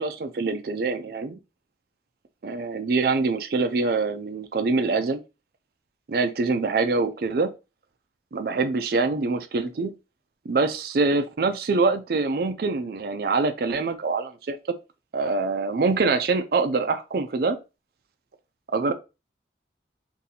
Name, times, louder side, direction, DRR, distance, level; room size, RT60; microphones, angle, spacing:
voice 1, 0.0-1.4 2.4-5.2 6.1-7.5 8.3-9.9 10.5-14.6 15.1-17.6 18.7-18.9, right 3 dB, 55° right, 0.4 m, -24 dB
2.7 x 2.6 x 4.0 m
head